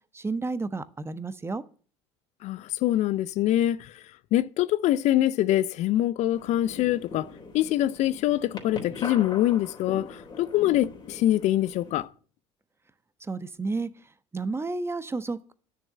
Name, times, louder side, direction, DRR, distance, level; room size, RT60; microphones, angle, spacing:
voice 1, 0.1-1.6 13.3-13.9 14.3-15.5, right 3 dB, 15° right, 1.0 m, -31 dB
voice 2, 2.4-3.9 4.3-12.1, left 13 dB, 55° left, 0.5 m, -24 dB
sound 1, 6.3-12.1, left 4 dB, 30° left, 3.7 m, -41 dB
10.0 x 6.9 x 8.7 m
hypercardioid pair, 70°, 15 cm